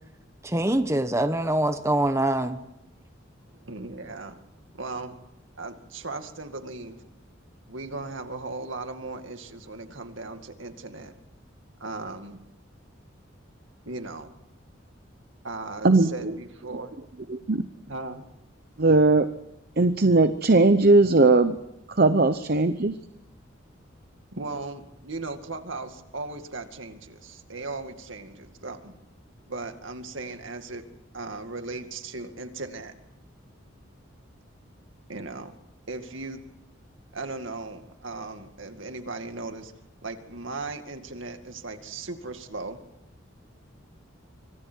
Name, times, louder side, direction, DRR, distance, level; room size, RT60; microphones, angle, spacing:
voice 1, 0.4-2.6, right 1 dB, 15° right, 9 dB, 1.0 m, -24 dB
voice 2, 3.5-4.4 4.7-5.2 5.6-7.0 7.7-11.1 11.8-12.4 13.9-14.3 15.4-17.0 17.9-18.3 24.3-28.9 29.5-30.8 31.1-32.9 35.1-35.5 35.9-36.4 37.1-39.7 40.0-42.8, right 3 dB, 75° right, 7 dB, 2.2 m, -37 dB
voice 3, 15.8-16.3 17.3-17.7 18.8-19.3 19.8-21.6 21.9-23.0, right 3 dB, 50° right, 10 dB, 0.8 m, -19 dB
25.0 x 25.0 x 4.6 m, 0.88 s
head